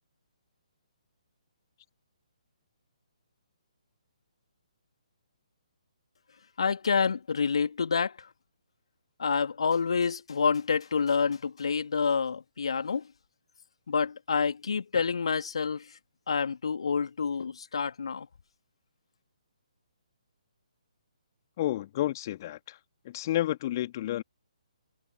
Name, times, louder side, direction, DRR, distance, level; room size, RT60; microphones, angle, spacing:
voice 1, 6.6-8.3 9.2-13.0 13.9-16.0 16.3-18.3, left 5 dB, 55° left, 2.2 m, -28 dB
voice 2, 21.6-22.8 23.0-24.2, left 14 dB, 30° left, 2.2 m, -30 dB
figure-of-eight pair, 135°, 4 cm